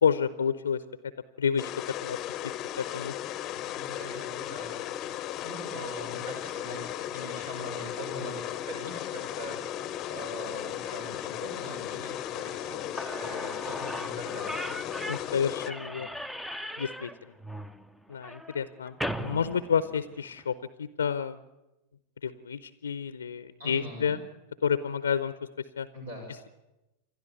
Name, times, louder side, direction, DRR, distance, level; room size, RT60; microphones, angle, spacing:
voice 1, 0.0-0.8 1.4-1.7 2.0-2.2 2.4-3.1 15.1-16.1 16.8-17.3 18.1-21.4 22.2-24.2 24.6-25.9, left 7 dB, 70° left, 15 dB, 0.7 m, -30 dB
sound 1, 1.6-15.7, left 12 dB, 35° left, 0.8 m, -36 dB
voice 2, 3.5-4.9 5.2-14.9 15.8-16.0 23.6-24.1 25.9-26.3, equal, 70° right, 1 dB, 6.2 m, -42 dB
Slam / Squeak, 12.7-12.8 13.0-20.4, equal, ahead, 0.7 m, -38 dB
28.5 x 12.0 x 8.4 m, 0.98 s
figure-of-eight pair, 90°, 0 cm